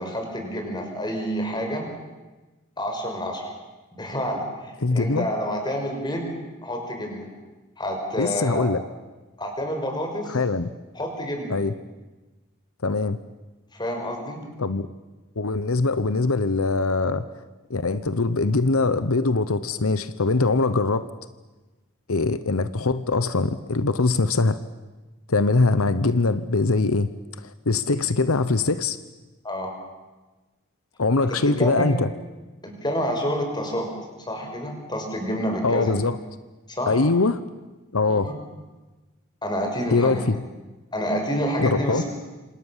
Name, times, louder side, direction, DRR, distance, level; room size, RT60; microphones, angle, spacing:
voice 1, 0.0-1.9 2.8-3.5 4.0-6.3 6.6-7.2 7.8-8.6 9.4-10.4 10.9-11.5 13.7-14.4 29.4-29.7 31.3-31.9 32.6-33.9 34.3-36.0 36.7-37.0 38.1-38.3 39.4-40.3 40.9-42.0, equal, 20° left, 3 dB, 6.1 m, -28 dB
voice 2, 4.8-5.3 8.2-8.8 10.3-10.7 11.5-11.7 12.8-13.2 14.6-14.9 15.4-17.2 17.7-21.1 22.1-24.6 25.3-27.1 27.4-29.0 31.0-32.1 35.6-36.2 36.9-37.4 37.9-38.4 39.9-40.4 41.6-42.0, left 3 dB, 90° left, 13 dB, 1.0 m, -22 dB
27.5 x 27.0 x 7.4 m, 1.2 s
head